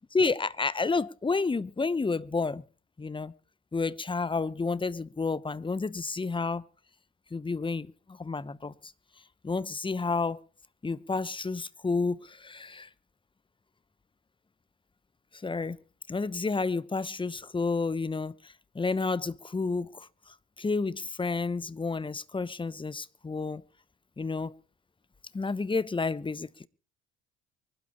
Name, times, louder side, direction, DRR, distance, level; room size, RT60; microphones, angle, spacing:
voice 1, 0.1-2.6 3.0-3.3 3.7-6.6 7.3-8.9 9.4-10.4 10.8-12.9 15.3-15.8 16.1-23.6 24.2-24.5 25.3-26.7, left 4 dB, 15° left, 0.9 m, -30 dB
24.5 x 12.0 x 3.0 m
hypercardioid pair, 60°, 34 cm